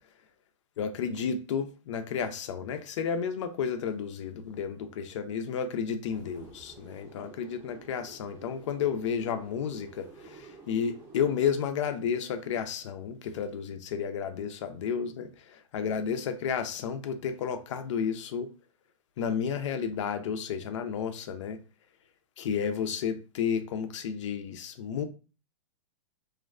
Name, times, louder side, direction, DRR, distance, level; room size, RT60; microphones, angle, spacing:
voice 1, 0.8-18.5 19.2-21.6 22.4-25.1, left 7 dB, 65° left, 0.4 m, -32 dB
sound 1, 6.0-11.6, right 4 dB, 15° right, 0.6 m, -51 dB
2.4 x 2.1 x 2.4 m
hypercardioid pair, 130°, 17 cm